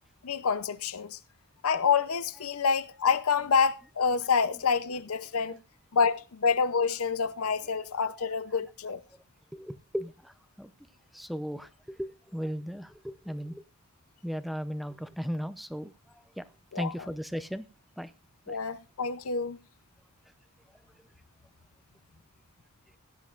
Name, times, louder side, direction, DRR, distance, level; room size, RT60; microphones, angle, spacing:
voice 1, 0.2-1.2 1.6-5.6 5.9-9.0 16.7-16.9 18.5-19.6, left 5 dB, 75° left, 0.7 m, -27 dB
voice 2, 9.5-10.7 11.1-13.6 14.2-16.4 16.8-17.7 18.0-18.1 18.5-18.6, equal, ahead, 0.6 m, -37 dB
16.5 x 11.5 x 2.5 m
head